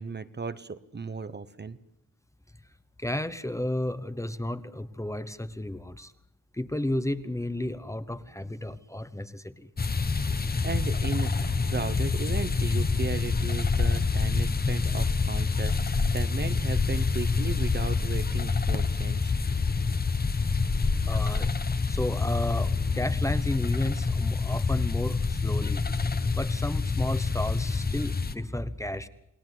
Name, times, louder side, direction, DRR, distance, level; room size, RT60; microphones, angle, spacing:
voice 1, 0.0-1.8 10.3-19.4, right 4 dB, 30° right, 13 dB, 0.9 m, -36 dB
voice 2, 3.0-6.1 6.5-9.7 21.1-21.5 21.9-25.8 26.4-29.1, left 1 dB, 10° left, 12 dB, 1.0 m, -32 dB
sound 1, 9.8-28.4, left 4 dB, 30° left, 1.3 m, -27 dB
29.0 x 20.0 x 8.0 m, 0.85 s
wide cardioid pair, 175°, 32 cm